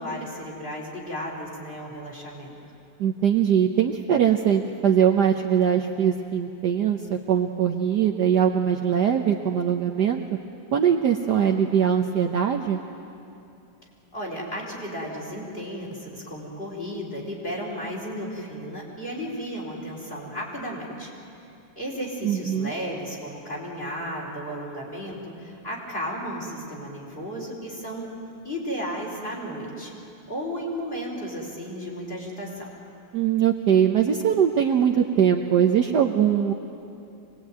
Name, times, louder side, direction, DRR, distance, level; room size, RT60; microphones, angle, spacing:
voice 1, 0.0-2.6 14.1-21.1 21.8-28.1 28.4-29.9 30.3-32.7, equal, 25° left, -3 dB, 4.9 m, -34 dB
voice 2, 3.0-10.2 10.7-12.8 22.2-22.7 33.1-36.5, right 8 dB, 60° right, 2 dB, 1.3 m, -21 dB
25.0 x 20.0 x 9.3 m, 2.8 s
omnidirectional pair, 2.4 m